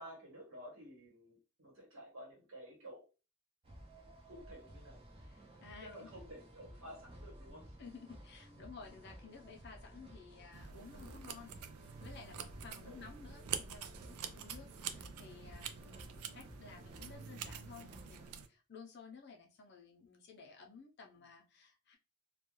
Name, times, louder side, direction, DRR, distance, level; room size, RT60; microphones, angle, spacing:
voice 1, 0.0-3.0 4.3-5.0 5.8-7.8 12.8-13.0, equal, 60° right, 1.0 m, -52 dB
sound 1, 3.6-18.4, right 1 dB, 25° right, 0.5 m, -55 dB
voice 2, 5.2-6.1 7.8-22.0, left 5 dB, 50° left, 0.5 m, -55 dB
sound 2, 10.5-18.5, right 8 dB, 85° right, 0.3 m, -46 dB
2.3 x 2.2 x 3.0 m
head